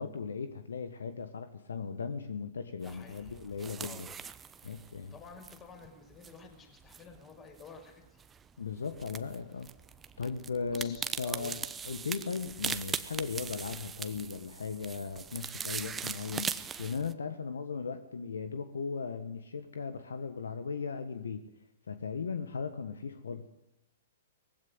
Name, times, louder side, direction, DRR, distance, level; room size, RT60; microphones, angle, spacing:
voice 1, 0.0-4.1 4.6-5.1 8.6-9.7 10.2-11.6 11.8-21.4 21.9-23.5, left 5 dB, 75° left, 10 dB, 1.5 m, -37 dB
voice 2, 2.8-3.4 3.8-4.1 5.1-8.2 10.7-11.7, left 5 dB, 25° left, 4 dB, 5.8 m, -51 dB
sound 1, 2.8-17.1, right 6 dB, 15° right, 1.0 m, -41 dB
20.0 x 16.0 x 9.6 m, 0.92 s
figure-of-eight pair, 110°, 0 cm